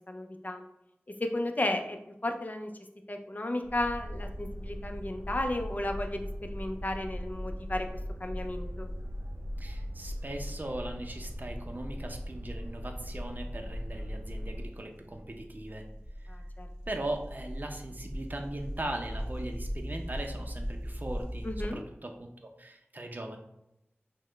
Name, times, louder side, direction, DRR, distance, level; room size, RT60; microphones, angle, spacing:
voice 1, 0.1-0.6 1.2-2.0 2.2-2.7 3.1-7.9 8.2-8.9 16.3-16.7 21.4-21.8, left 1 dB, 40° left, 5 dB, 0.5 m, -33 dB
Boat Water vehicle, 3.6-14.7, equal, 85° right, 0.6 m, -39 dB
voice 2, 9.6-15.9 16.9-22.1 22.4-23.4, right 1 dB, 45° right, 3 dB, 0.6 m, -39 dB
sound 1, 13.4-21.7, equal, 20° right, 1.0 m, -39 dB
5.7 x 2.1 x 3.2 m, 0.84 s
wide cardioid pair, 50°, 4 cm